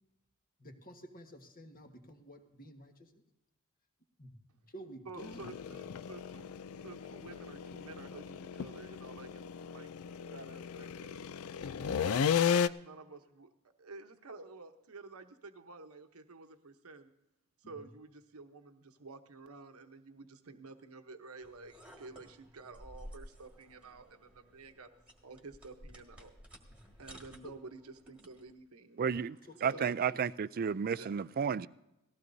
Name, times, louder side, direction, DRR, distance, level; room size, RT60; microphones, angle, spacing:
voice 1, 0.6-3.1 4.2-4.3 4.7-5.7 17.6-17.9 26.9-27.0 27.4-27.5 29.5-30.2, equal, 40° left, 4 dB, 1.5 m, -52 dB
voice 2, 5.0-9.9 10.3-11.2 12.4-13.5 13.8-17.1 17.6-24.9 25.2-26.4 27.0-29.3 29.6-30.0 31.0-31.2, right 3 dB, 85° right, 6 dB, 1.0 m, -51 dB
sound 1, 5.2-12.7, left 7 dB, 75° left, 0.4 m, -35 dB
sound 2, 21.4-28.5, equal, 5° right, 1.7 m, -54 dB
voice 3, 29.0-31.7, right 7 dB, 45° right, 17 dB, 0.3 m, -32 dB
19.0 x 15.0 x 2.7 m, 0.91 s
head